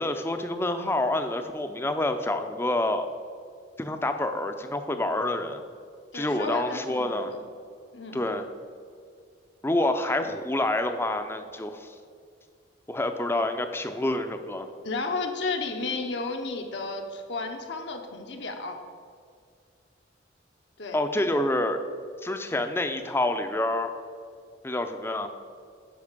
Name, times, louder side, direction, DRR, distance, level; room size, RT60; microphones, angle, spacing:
voice 1, 0.0-3.1 3.8-5.6 6.1-7.3 8.1-8.5 9.6-11.9 12.9-14.7 20.9-21.8 22.2-23.9 24.6-25.3, left 1 dB, 10° left, 7 dB, 0.5 m, -27 dB
voice 2, 6.1-7.4 7.9-8.2 14.8-18.8 20.8-21.0, left 3 dB, 65° left, 3 dB, 0.9 m, -33 dB
8.6 x 5.4 x 6.7 m, 2.2 s
head